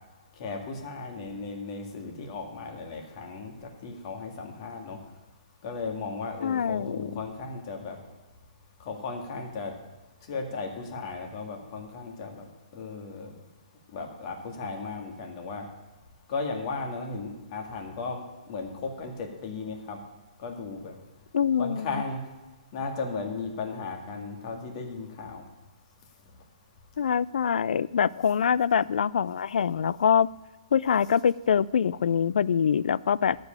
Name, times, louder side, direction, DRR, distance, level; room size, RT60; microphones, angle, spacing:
voice 1, 0.4-5.0 5.6-8.0 8.8-9.7 10.3-12.5 12.7-13.3 13.9-15.7 16.3-18.2 18.5-20.0 20.4-20.9 21.6-22.2 22.7-25.4, left 4 dB, 40° left, 3 dB, 2.0 m, -35 dB
voice 2, 6.4-7.0 21.3-22.0 27.0-30.3 30.7-33.4, left 7 dB, 75° left, 20 dB, 0.3 m, -24 dB
13.0 x 5.3 x 8.7 m, 1.1 s
hypercardioid pair, 155°, 4 cm